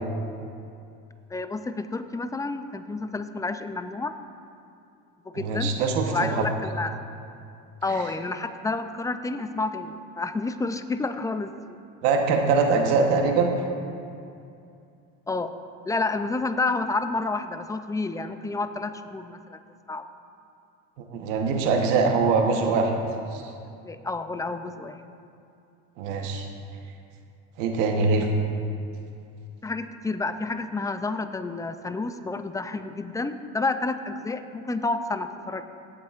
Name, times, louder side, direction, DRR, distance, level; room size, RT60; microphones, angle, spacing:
voice 1, 1.3-4.1 5.3-5.7 6.1-7.0 7.8-11.8 15.3-15.5 15.9-19.6 19.9-20.1 23.8-25.0 29.6-35.6, left 3 dB, 10° left, 10 dB, 0.4 m, -30 dB
voice 2, 5.3-6.5 7.9-8.0 12.0-13.5 21.0-22.9 23.3-23.4 26.0-26.5 27.6-28.3, right 4 dB, 80° right, 3 dB, 1.2 m, -23 dB
17.0 x 7.7 x 2.5 m, 2.5 s
supercardioid pair, 95°, 36 cm